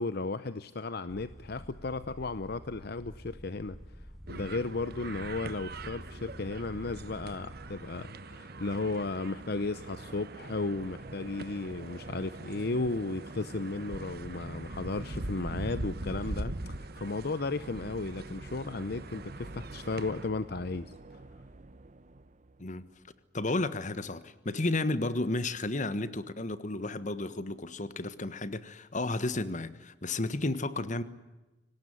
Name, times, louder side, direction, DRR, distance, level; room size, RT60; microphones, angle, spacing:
voice 1, 0.0-3.8 4.3-20.9, left 3 dB, 60° left, 0.8 m, -34 dB
sound 1, 1.1-8.0, equal, ahead, 1.1 m, -48 dB
sound 2, 4.3-20.3, right 2 dB, 60° right, 1.3 m, -43 dB
sound 3, 6.2-23.2, right 2 dB, 45° right, 1.0 m, -49 dB
voice 2, 23.3-31.0, left 2 dB, 45° left, 1.4 m, -32 dB
25.0 x 19.0 x 9.6 m
head